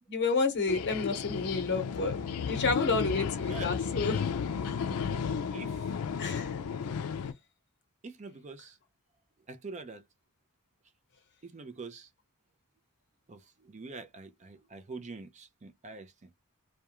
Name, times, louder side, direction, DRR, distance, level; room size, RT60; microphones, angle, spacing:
voice 1, 0.1-2.2 2.5-4.2 4.7-4.8 6.2-6.5, left 4 dB, 55° left, 0.9 m, -30 dB
sound 1, 0.7-7.3, left 6 dB, 80° left, 0.4 m, -33 dB
voice 2, 5.5-5.9 8.0-8.8 9.5-10.0 11.4-12.1 13.3-16.3, right 3 dB, 35° right, 0.5 m, -45 dB
2.3 x 2.2 x 2.9 m
head